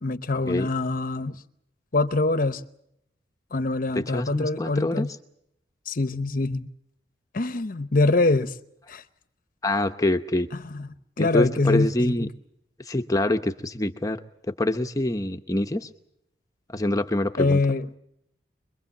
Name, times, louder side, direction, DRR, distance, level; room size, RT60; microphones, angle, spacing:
voice 1, 0.0-1.4 1.9-2.6 3.5-5.1 5.9-6.7 7.3-8.6 8.9-9.0 10.5-10.9 11.2-12.3 17.4-18.0, left 2 dB, 50° left, 0.9 m, -24 dB
voice 2, 3.9-5.1 9.6-10.5 11.2-12.3 12.8-14.2 14.6-15.9 16.7-17.6, left 1 dB, 20° left, 0.9 m, -25 dB
24.5 x 22.5 x 7.2 m
head